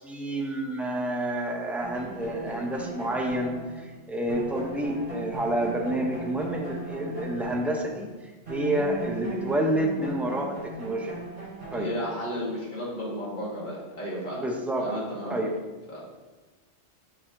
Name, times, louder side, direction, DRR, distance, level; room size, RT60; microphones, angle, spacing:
voice 1, 0.0-8.1 8.5-11.2 11.7-11.9 14.4-14.9 15.3-15.5, right 1 dB, ahead, 1 dB, 0.5 m, -29 dB
sound 1, 1.8-8.2 8.4-12.4, right 2 dB, 55° right, 2.0 m, -38 dB
voice 2, 11.7-14.4 14.8-15.5 15.9-16.0, equal, 40° left, -6 dB, 2.0 m, -33 dB
6.1 x 6.0 x 2.7 m, 1.2 s
omnidirectional pair, 1.2 m